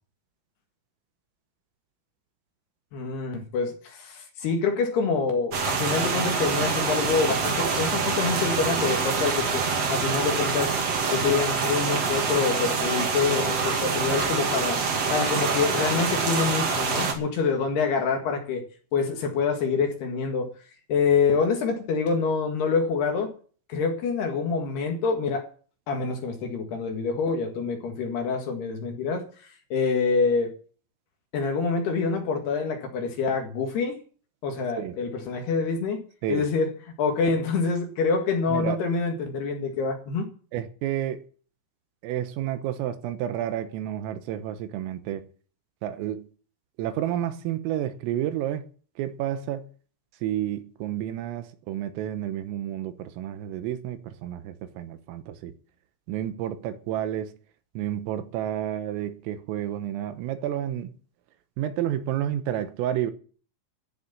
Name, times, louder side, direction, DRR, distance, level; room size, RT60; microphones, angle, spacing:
voice 1, 2.9-9.6 9.9-10.8 11.1-14.8 15.1-18.6 18.9-20.5 20.9-23.3 23.7-25.5 25.9-29.2 29.7-30.5 31.3-34.0 34.4-36.0 36.3-36.7 37.0-40.3, left 5 dB, 60° left, 3.5 m, -26 dB
sound 1, 5.5-17.1, right 5 dB, 45° right, 2.3 m, -26 dB
voice 2, 40.5-41.2 42.0-45.3 45.8-46.3 46.8-48.6 49.0-49.7 50.2-55.5 56.1-57.3 57.8-60.9 61.6-63.1, right 11 dB, 85° right, 3.7 m, -30 dB
14.5 x 6.9 x 8.9 m
omnidirectional pair, 6.0 m